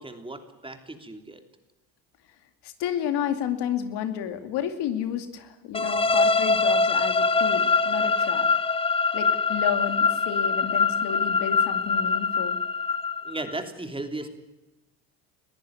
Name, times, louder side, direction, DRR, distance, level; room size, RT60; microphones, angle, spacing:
voice 1, 0.0-1.4 13.2-14.3, right 2 dB, 10° right, 6 dB, 3.1 m, -36 dB
voice 2, 2.6-8.5 9.1-12.6, left 9 dB, 70° left, 8 dB, 2.5 m, -31 dB
sound 1, 5.7-13.5, left 4 dB, 15° left, 0.8 m, -23 dB
21.0 x 14.5 x 9.6 m, 1.0 s
supercardioid pair, 90°, 42 cm